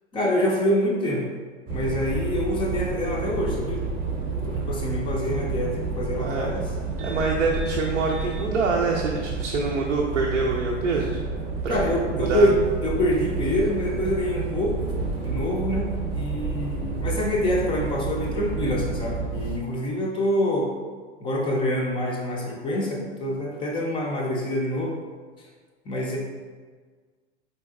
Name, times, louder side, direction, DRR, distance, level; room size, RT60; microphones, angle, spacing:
voice 1, 0.1-1.3 1.7-3.8 4.4-6.7 11.7-14.9 15.2-20.7 21.2-25.0 25.4-25.5 25.9-26.2, equal, 15° left, -2 dB, 0.4 m, -26 dB
sound 1, 1.7-19.6, right 4 dB, 30° right, 0.7 m, -30 dB
voice 2, 6.2-6.5 7.0-11.2 11.6-11.8 12.1-12.5, right 3 dB, 85° right, -1 dB, 0.5 m, -25 dB
3.9 x 2.7 x 2.3 m, 1.5 s
hypercardioid pair, 100°, 36 cm